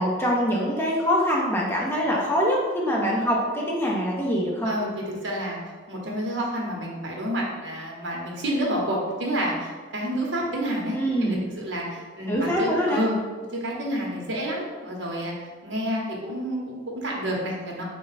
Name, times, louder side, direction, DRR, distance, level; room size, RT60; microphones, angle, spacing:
voice 1, 0.0-4.7 10.9-11.4 12.3-13.0, equal, 10° left, -3 dB, 0.6 m, -24 dB
voice 2, 4.6-5.6 5.9-13.1 13.6-15.3 15.6-17.8, equal, 65° right, -2 dB, 0.8 m, -29 dB
3.6 x 2.2 x 4.0 m, 1.4 s
head